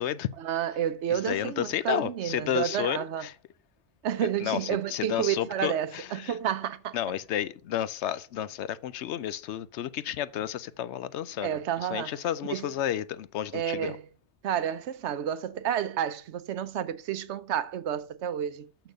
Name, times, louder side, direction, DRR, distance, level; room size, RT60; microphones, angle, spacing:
voice 1, 0.4-3.3 4.0-7.0 11.4-12.1 12.4-12.7 13.5-14.0 14.4-18.7, right 10 dB, 75° right, 0.9 m, -30 dB
voice 2, 1.3-3.3 4.4-6.3 6.9-11.5 11.9-13.9, left 11 dB, 75° left, 0.9 m, -31 dB
6.7 x 6.0 x 6.5 m
omnidirectional pair, 1.2 m